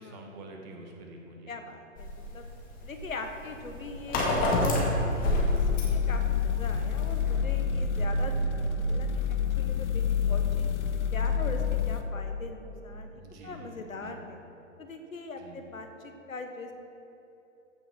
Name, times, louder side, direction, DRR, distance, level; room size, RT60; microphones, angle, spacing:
voice 1, 0.0-1.5 13.1-14.2 15.4-15.6, right 1 dB, 35° right, 1 dB, 1.6 m, -47 dB
voice 2, 1.5-2.5 2.8-9.2 9.6-10.7 11.1-14.4 14.8-16.7, left 3 dB, 80° left, 5 dB, 1.4 m, -41 dB
sound 1, 2.0-7.3, left 1 dB, 20° left, 2.0 m, -29 dB
sound 2, 5.3-12.0, left 6 dB, 55° left, 0.9 m, -28 dB
15.0 x 6.9 x 4.5 m, 2.9 s
figure-of-eight pair, 120°, 40 cm